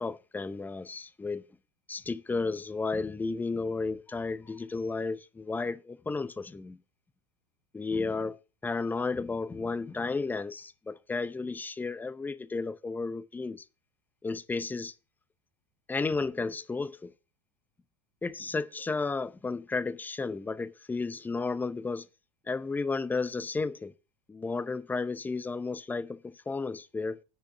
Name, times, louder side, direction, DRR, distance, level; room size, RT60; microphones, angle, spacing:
voice 1, 0.0-1.4 1.9-6.8 7.7-13.6 14.2-14.9 15.9-17.1 18.2-22.1 22.5-23.9 24.3-27.2, left 4 dB, 10° left, 0.7 m, -33 dB
10.0 x 6.3 x 5.8 m
figure-of-eight pair, 80°, 16 cm